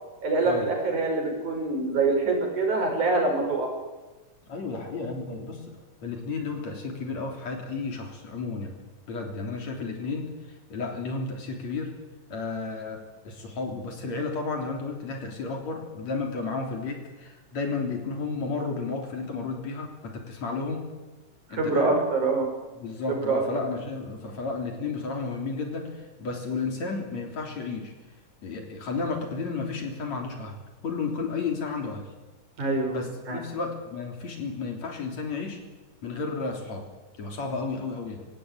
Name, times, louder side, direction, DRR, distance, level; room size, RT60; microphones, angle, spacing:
voice 1, 0.2-3.7 21.6-22.5 23.1-23.4 32.6-33.0 33.3-33.4, right 3 dB, 65° right, 2 dB, 6.5 m, -25 dB
voice 2, 4.4-5.6 6.0-8.8 9.1-10.3 10.7-11.9 12.3-20.8 21.5-22.0 22.8-27.9 28.4-30.6 30.8-32.0 32.9-35.6 36.0-36.8 37.2-38.3, left 4 dB, 55° left, 3 dB, 4.6 m, -32 dB
25.5 x 17.0 x 9.2 m, 1.2 s
omnidirectional pair, 3.8 m